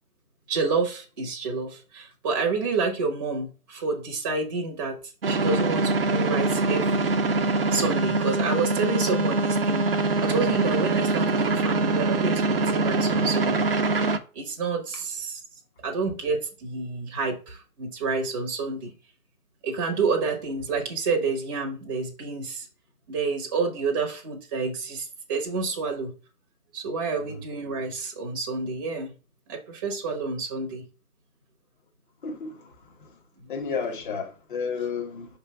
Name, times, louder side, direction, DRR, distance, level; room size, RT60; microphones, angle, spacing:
voice 1, 0.5-7.2 7.7-13.7 14.3-15.4 15.8-18.9 19.6-22.7 23.1-26.1 26.7-29.1 29.5-30.8 33.4-33.5, right 4 dB, 15° right, 0.8 m, -29 dB
sound 1, 5.2-14.2, right 3 dB, 40° right, 0.6 m, -24 dB
voice 2, 32.2-32.6 33.5-35.3, left 5 dB, 35° left, 1.3 m, -31 dB
5.7 x 3.4 x 5.5 m
figure-of-eight pair, 150°, 46 cm